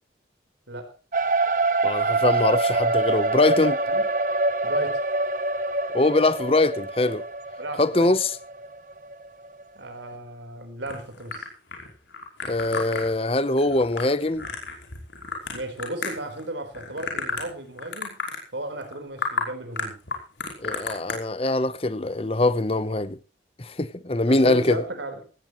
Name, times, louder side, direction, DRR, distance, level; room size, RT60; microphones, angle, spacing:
sound 1, 1.1-9.6, right 2 dB, 45° right, 0.7 m, -25 dB
voice 1, 1.8-3.8 5.9-7.2 7.8-8.4 12.5-14.5 20.6-23.2 23.6-24.8, left 2 dB, 30° left, 0.9 m, -23 dB
voice 2, 4.6-5.0 7.6-8.1 9.7-11.4 15.5-18.2 18.5-20.0 24.3-25.2, right 1 dB, 85° right, 4.3 m, -35 dB
sound 2, 10.9-16.4 16.7-17.5 17.8-18.4 18.8-18.9 19.2-19.5 19.8-21.2, left 4 dB, 85° left, 5.3 m, -32 dB
18.0 x 16.5 x 3.1 m
head